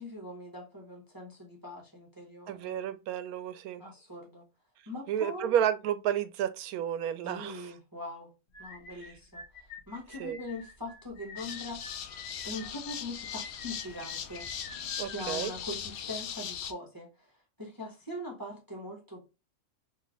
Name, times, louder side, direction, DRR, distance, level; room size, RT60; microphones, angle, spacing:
voice 1, 0.0-2.8 3.8-4.4 4.9-5.6 7.2-8.3 8.6-11.8 12.4-14.5 15.0-19.3, left 1 dB, 20° right, 0.8 m, -42 dB
voice 2, 2.5-3.8 5.1-7.7 10.2-10.4 15.0-15.5, right 10 dB, 80° right, 1.0 m, -31 dB
sound 1, 8.5-15.9, left 4 dB, 45° left, 0.9 m, -49 dB
sound 2, 11.4-16.7, left 8 dB, 90° left, 0.5 m, -39 dB
3.1 x 2.8 x 3.8 m
omnidirectional pair, 1.5 m